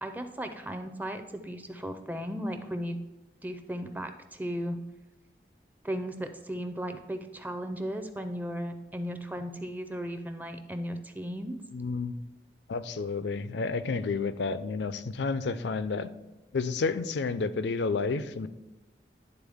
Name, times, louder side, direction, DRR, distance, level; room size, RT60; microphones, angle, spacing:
voice 1, 0.0-3.0 3.4-4.8 5.8-11.6, equal, 10° right, 7 dB, 0.4 m, -36 dB
voice 2, 11.7-12.1 12.7-16.1 16.5-18.5, left 4 dB, 75° left, 13 dB, 0.4 m, -30 dB
10.5 x 4.0 x 3.5 m, 1.1 s
head